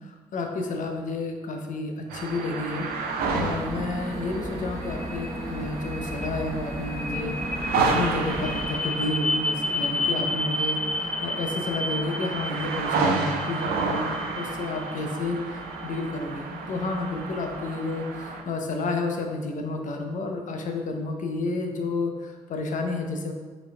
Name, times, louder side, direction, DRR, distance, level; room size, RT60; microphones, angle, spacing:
voice 1, 0.3-2.9 3.3-7.3 7.7-10.8 11.2-14.1 14.3-15.4 15.8-23.3, left 3 dB, 50° left, 3 dB, 0.9 m, -30 dB
sound 1, 2.1-18.4, right 4 dB, 65° right, 0.7 m, -31 dB
sound 2, 2.8-20.5, left 1 dB, 5° left, 0.4 m, -34 dB
sound 3, 3.2-8.6, right 1 dB, 20° right, 1.2 m, -35 dB
7.2 x 5.4 x 2.4 m, 1.3 s
figure-of-eight pair, 40°, 17 cm